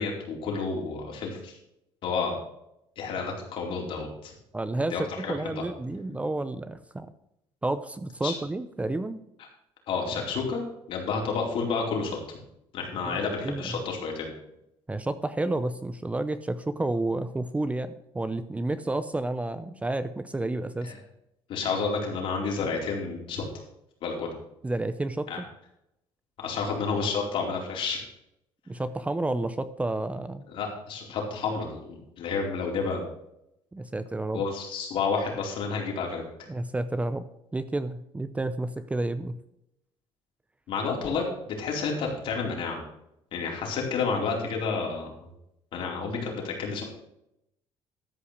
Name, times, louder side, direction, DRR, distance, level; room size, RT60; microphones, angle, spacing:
voice 1, 0.0-1.6 2.0-2.3 3.0-4.3 4.9-5.3 8.2-8.3 9.9-10.6 10.9-12.4 12.7-14.3 20.8-20.9 21.5-23.4 24.0-24.3 25.3-25.4 26.4-28.0 30.5-33.0 34.3-36.2 40.7-42.8 43.3-45.1 45.7-46.8, left 4 dB, 65° left, -1 dB, 4.4 m, -30 dB
voice 2, 4.5-7.1 7.6-9.2 13.0-13.8 14.9-20.9 24.6-25.3 28.7-30.5 33.7-34.4 36.5-37.2 37.5-39.4, right 2 dB, 15° right, 12 dB, 0.7 m, -30 dB
13.0 x 5.5 x 6.7 m, 0.79 s
cardioid pair, 105°, 10 cm